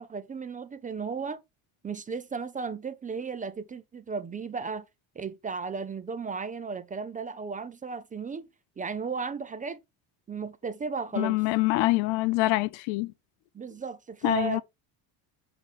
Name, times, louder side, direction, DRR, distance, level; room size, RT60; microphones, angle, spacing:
voice 1, 0.0-1.4 1.8-4.8 5.2-8.5 8.8-9.8 10.3-11.4 13.5-14.6, right 5 dB, 20° right, 0.4 m, -35 dB
voice 2, 11.1-13.1 14.2-14.6, left 20 dB, 85° left, 0.7 m, -25 dB
8.1 x 3.7 x 3.5 m
cardioid pair, 125°, 46 cm